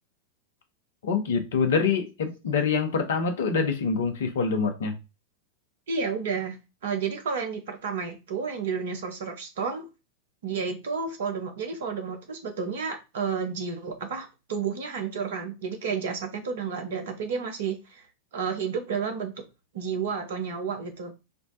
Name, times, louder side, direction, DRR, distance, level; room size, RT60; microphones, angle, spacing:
voice 1, 1.0-5.0, left 5 dB, 60° left, 0.7 m, -25 dB
voice 2, 5.9-6.6 6.8-9.9 10.4-18.0 18.3-19.3 19.7-21.1, right 5 dB, 60° right, 0.8 m, -31 dB
4.2 x 2.1 x 2.7 m
figure-of-eight pair, 90°, 0 cm